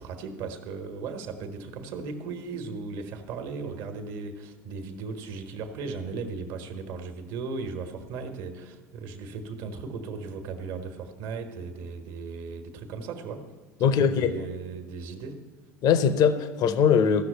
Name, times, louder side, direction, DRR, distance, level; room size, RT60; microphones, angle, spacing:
voice 1, 0.0-13.5 13.8-15.4, right 4 dB, 55° right, 6 dB, 1.4 m, -37 dB
voice 2, 13.8-14.3 15.8-17.2, left 7 dB, 45° left, 12 dB, 0.8 m, -21 dB
14.5 x 6.5 x 9.1 m, 1.4 s
figure-of-eight pair, 70°, 9 cm